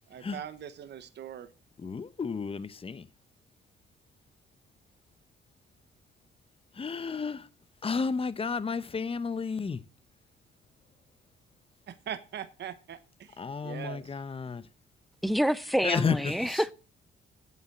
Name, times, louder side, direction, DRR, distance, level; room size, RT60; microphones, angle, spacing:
voice 1, 0.1-1.5 11.9-14.1, right 9 dB, 60° right, 1.0 m, -41 dB
voice 2, 1.8-3.0 6.8-7.5 7.8-9.8 13.4-14.6 15.8-16.3, left 5 dB, 30° left, 0.8 m, -32 dB
voice 3, 15.2-16.7, equal, ahead, 0.6 m, -27 dB
8.2 x 7.3 x 7.6 m
cardioid pair, 90°, 20 cm